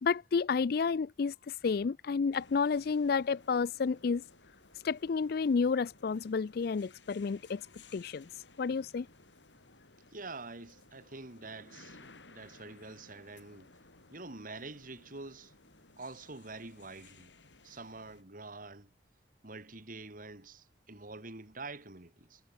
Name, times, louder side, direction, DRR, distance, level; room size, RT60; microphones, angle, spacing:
voice 1, 0.0-4.2 4.8-7.6 7.9-8.3 8.6-9.1, left 5 dB, 55° left, 0.4 m, -30 dB
sound 1, 2.3-18.2, left 3 dB, 85° left, 6.7 m, -59 dB
voice 2, 10.1-13.7 14.1-15.5 16.0-17.3 17.6-18.9 19.4-22.4, right 3 dB, 50° right, 2.6 m, -46 dB
head